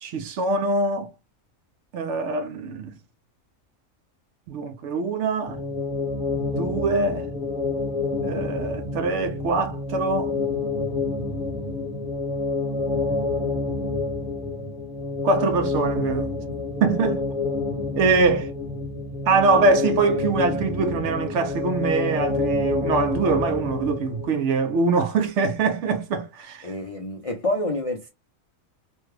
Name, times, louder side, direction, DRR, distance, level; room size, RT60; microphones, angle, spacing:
voice 1, 0.0-1.1 1.9-2.9 4.5-5.6 6.6-7.3 8.2-10.3 15.2-16.3 16.8-17.2 18.0-18.5 19.3-26.7, right 4 dB, 65° right, 0.8 m, -23 dB
sound 1, 5.5-24.3, left 3 dB, ahead, 0.9 m, -28 dB
voice 2, 26.6-28.1, left 1 dB, 45° left, 0.4 m, -28 dB
3.1 x 2.3 x 3.2 m
omnidirectional pair, 1.4 m